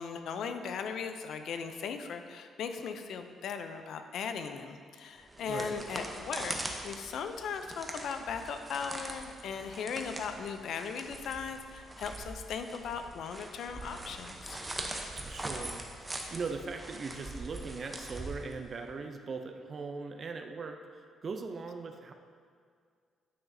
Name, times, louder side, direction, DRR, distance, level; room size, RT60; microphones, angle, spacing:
voice 1, 0.0-6.6 6.8-14.6, left 6 dB, 70° left, 7 dB, 0.5 m, -38 dB
sound 1, 5.2-18.9, right 1 dB, 15° right, 0.8 m, -42 dB
voice 2, 5.4-5.8 15.2-22.1, right 4 dB, 45° right, 5 dB, 0.5 m, -40 dB
9.4 x 5.8 x 2.7 m, 2.1 s
cardioid pair, 90°, 0 cm